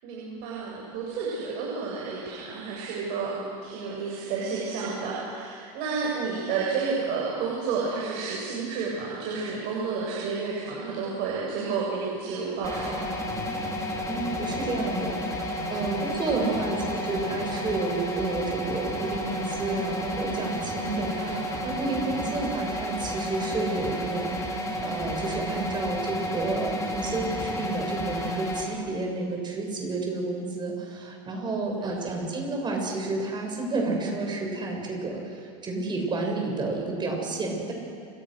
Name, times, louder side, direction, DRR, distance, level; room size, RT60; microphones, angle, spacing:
voice 1, 0.0-13.0 16.3-16.8 20.9-21.4 22.1-22.5 31.7-32.2, right 5 dB, 55° right, -4 dB, 7.5 m, -31 dB
sound 1, 12.6-28.6, equal, 15° left, 4.6 m, -31 dB
voice 2, 14.1-21.1 21.6-24.3 24.8-37.7, right 2 dB, 20° right, 1 dB, 7.4 m, -30 dB
30.0 x 26.0 x 6.7 m, 2.3 s
supercardioid pair, 130°, 20 cm